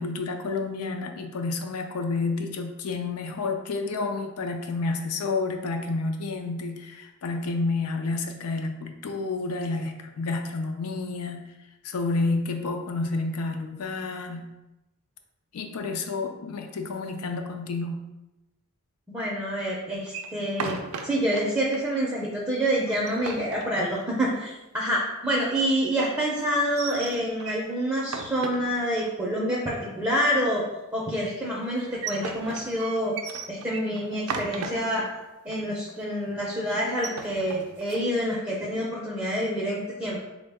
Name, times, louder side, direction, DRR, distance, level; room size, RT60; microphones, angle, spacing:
voice 1, 0.0-11.4 11.8-14.5 15.5-18.0, left 3 dB, 85° left, 5 dB, 0.4 m, -30 dB
voice 2, 19.1-20.8 21.0-30.6 30.9-33.1 33.5-35.0 35.4-40.2, equal, 10° right, -5 dB, 0.4 m, -27 dB
sound 1, 20.1-21.4 21.7-21.8 22.2-22.3 22.8-24.3 26.5-27.7 28.0-29.1 31.7-35.1 35.5-35.6 35.9-36.2 36.8-38.0, right 5 dB, 75° right, 0.4 m, -36 dB
3.5 x 2.1 x 3.3 m, 1.0 s
head